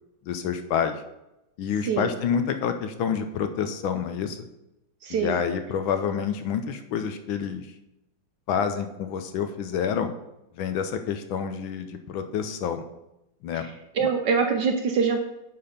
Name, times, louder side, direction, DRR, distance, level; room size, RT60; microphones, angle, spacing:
voice 1, 0.3-0.9 1.6-4.4 5.1-7.7 8.5-10.1 10.6-12.8 13.4-13.7 14.0-14.1, left 7 dB, 75° left, 8 dB, 1.4 m, -28 dB
voice 2, 5.0-5.4 13.5-15.2, right 6 dB, 70° right, 4 dB, 1.1 m, -25 dB
9.6 x 4.1 x 5.1 m, 0.88 s
omnidirectional pair, 2.4 m